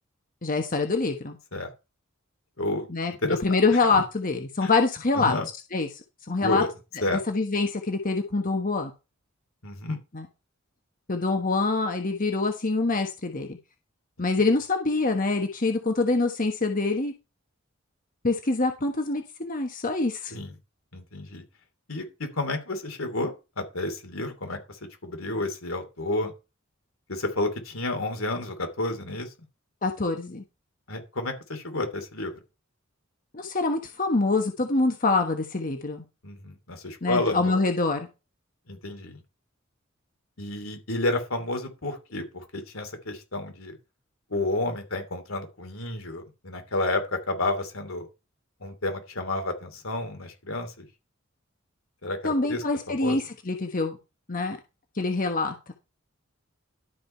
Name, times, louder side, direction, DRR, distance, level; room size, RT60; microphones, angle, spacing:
voice 1, 0.4-1.4 2.9-3.1 3.4-5.4 5.7-5.9 6.3-6.6 7.1-8.9 10.1-10.3 11.1-13.6 14.2-17.1 18.2-20.3 29.8-30.4 33.3-36.0 37.0-38.1 52.2-54.0 54.3-54.6 55.0-55.5, left 3 dB, 40° left, 5 dB, 1.2 m, -25 dB
voice 2, 2.6-2.9 3.2-3.4 4.6-4.7 5.2-5.5 6.4-6.7 7.0-7.2 9.6-10.0 20.3-20.5 20.9-21.4 21.9-26.3 27.1-29.3 30.9-32.3 36.2-37.6 38.7-39.2 40.4-43.8 44.3-48.1 48.6-50.9 52.0-52.6 53.0-53.2, left 2 dB, 85° left, 5 dB, 2.9 m, -30 dB
12.0 x 5.0 x 5.6 m, 0.27 s
head